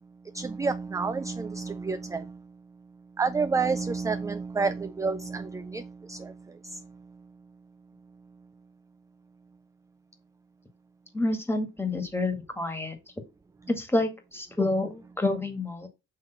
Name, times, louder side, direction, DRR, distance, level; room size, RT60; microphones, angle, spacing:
voice 1, 0.3-2.5 3.2-7.2, right 4 dB, 10° right, 0.3 m, -30 dB
voice 2, 11.1-13.0 13.7-15.9, left 2 dB, 10° left, 1.8 m, -28 dB
6.6 x 3.2 x 5.7 m
cardioid pair, 90°, 30 cm